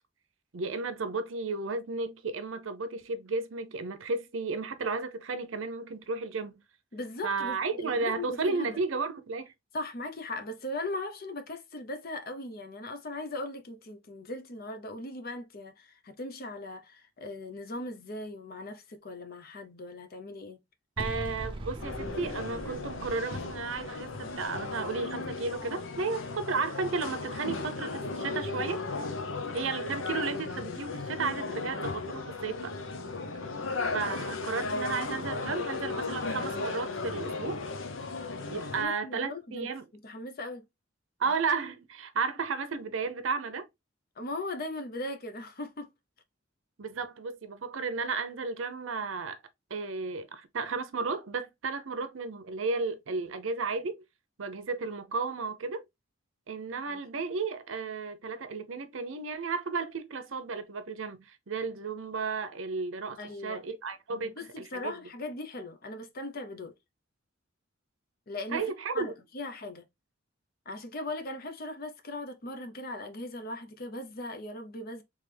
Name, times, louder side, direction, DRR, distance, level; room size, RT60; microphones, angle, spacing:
voice 1, 0.5-6.6 7.2-9.5 21.0-28.8 29.5-32.7 33.9-37.7 38.5-39.9 41.2-43.7 46.8-49.4 49.7-54.0 54.4-55.9 56.5-65.0 68.5-69.1, right 4 dB, 85° right, 0.7 m, -33 dB
voice 2, 6.9-8.8 9.7-20.6 34.0-34.2 38.6-39.7 40.0-40.6 44.2-45.9 56.9-57.0 63.2-63.6 64.1-66.7 68.3-68.6 68.9-69.9 70.7-75.0, left 2 dB, 50° left, 0.7 m, -39 dB
sound 1, 21.0-26.1, right 1 dB, 25° right, 0.6 m, -43 dB
sound 2, 21.8-38.8, left 3 dB, 85° left, 0.8 m, -36 dB
3.5 x 3.3 x 3.3 m
head